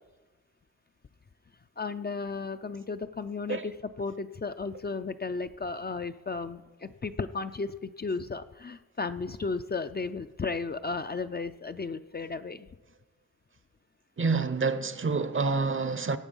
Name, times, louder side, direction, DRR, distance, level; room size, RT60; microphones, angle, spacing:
voice 1, 1.8-12.7, left 4 dB, 35° left, 0.4 m, -34 dB
voice 2, 14.2-16.2, right 4 dB, 40° right, 0.6 m, -27 dB
17.0 x 8.2 x 5.4 m
wide cardioid pair, 120°, 30 cm